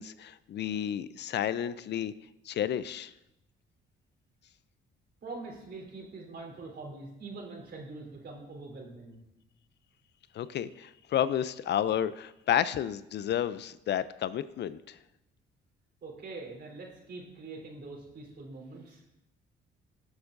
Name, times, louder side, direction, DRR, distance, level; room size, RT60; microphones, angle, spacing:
voice 1, 0.0-2.1 2.5-3.1 10.3-15.0, left 10 dB, 60° left, 15 dB, 0.5 m, -31 dB
voice 2, 5.2-9.2 16.0-19.0, right 3 dB, 55° right, -1 dB, 3.4 m, -44 dB
19.5 x 7.2 x 2.6 m, 0.89 s
cardioid pair, 90°, 20 cm